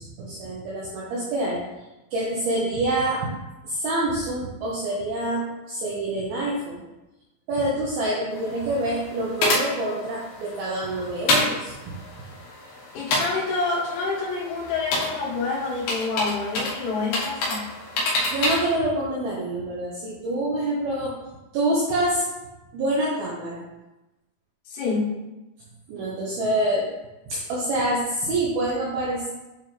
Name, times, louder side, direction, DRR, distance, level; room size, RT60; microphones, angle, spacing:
voice 1, 0.0-1.6 2.1-3.3 3.6-6.8 7.5-11.9 18.3-21.1 21.5-22.2 22.7-23.6 25.9-26.9 27.3-29.3, right 1 dB, 80° right, -5 dB, 2.2 m, -26 dB
sound 1, 8.3-18.8, left 2 dB, 70° left, 2.2 m, -29 dB
voice 2, 13.0-17.7 24.7-25.2, left 3 dB, 85° left, -5 dB, 4.0 m, -27 dB
8.6 x 3.5 x 3.2 m, 1.0 s
omnidirectional pair, 5.5 m